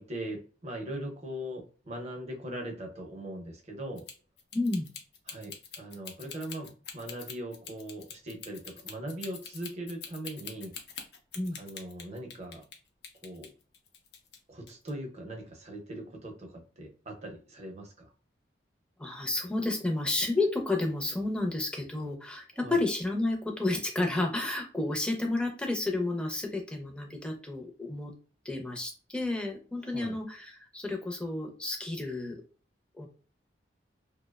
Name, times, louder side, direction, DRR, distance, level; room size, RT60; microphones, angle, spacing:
voice 1, 0.0-4.0 5.3-10.7 11.6-12.6 13.2-13.5 14.5-18.1 22.6-22.8 29.8-30.2, right 1 dB, 35° right, 2 dB, 0.6 m, -40 dB
sound 1, 4.0-12.8 13.0-14.4 14.7-14.9, left 6 dB, 65° left, 0.5 m, -44 dB
voice 2, 4.5-4.8 11.4-11.6 19.0-28.1 28.4-32.4 33.0-33.1, left 2 dB, 5° left, 1 dB, 0.5 m, -31 dB
2.7 x 2.0 x 2.2 m, 0.38 s
head